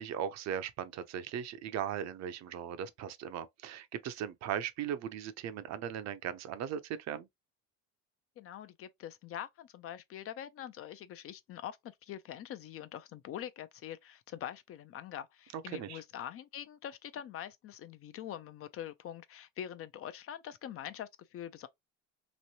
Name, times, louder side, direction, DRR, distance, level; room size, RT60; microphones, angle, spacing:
voice 1, 0.0-7.3 15.5-16.0, right 9 dB, 55° right, 0.6 m, -38 dB
voice 2, 8.4-21.7, left 10 dB, 45° left, 0.5 m, -44 dB
3.1 x 2.6 x 2.7 m
supercardioid pair, 95°, 32 cm